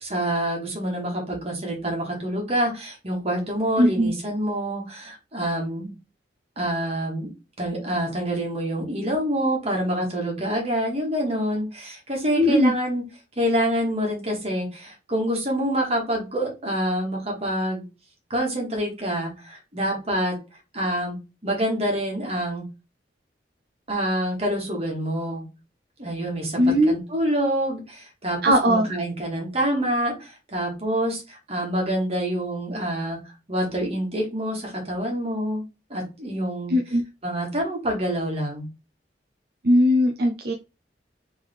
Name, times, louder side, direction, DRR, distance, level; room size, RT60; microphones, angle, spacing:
voice 1, 0.0-5.9 6.6-7.3 7.6-13.0 13.4-17.8 18.3-20.4 20.7-21.2 21.4-22.6 23.9-25.4 26.0-33.2 33.5-35.6 35.9-38.7, right 1 dB, 35° right, 0 dB, 1.6 m, -26 dB
voice 2, 3.8-4.1 12.4-12.7 26.6-26.9 28.4-28.9 36.7-37.0 39.6-40.5, equal, 60° right, 3 dB, 0.5 m, -19 dB
3.7 x 3.3 x 3.5 m, 0.28 s
head